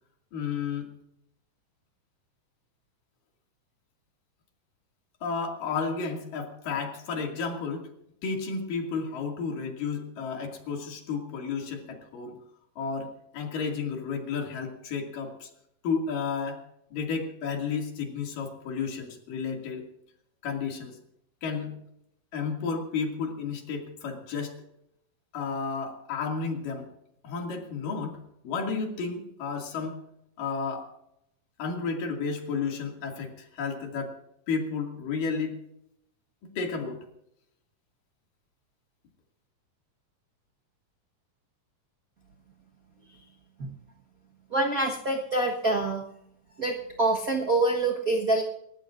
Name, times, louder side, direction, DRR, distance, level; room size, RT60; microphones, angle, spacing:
voice 1, 0.3-0.9 5.2-7.9 8.2-12.4 12.8-15.5 15.8-16.7 16.9-19.9 20.4-21.0 21.4-21.8 22.3-24.6 25.3-26.9 27.2-28.2 28.4-30.0 30.4-30.9 31.6-34.2 34.5-35.6 36.4-37.0, left 5 dB, 80° left, 2 dB, 4.0 m, -32 dB
voice 2, 44.5-46.0 46.6-48.4, right 2 dB, 55° right, 0 dB, 0.9 m, -26 dB
28.0 x 14.0 x 2.6 m, 0.79 s
omnidirectional pair, 3.8 m